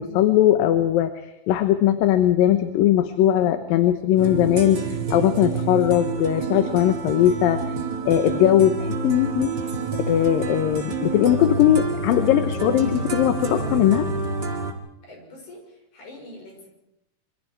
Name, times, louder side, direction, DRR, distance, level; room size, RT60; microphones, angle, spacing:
voice 1, 0.0-7.6 8.1-9.5 10.1-14.1, left 11 dB, 80° left, 9 dB, 2.8 m, -19 dB
sound 1, 4.2-14.7, right 4 dB, 35° right, 2.6 m, -28 dB
voice 2, 15.0-16.7, left 1 dB, 60° left, 1 dB, 7.4 m, -44 dB
26.5 x 25.5 x 4.7 m, 0.85 s
omnidirectional pair, 4.0 m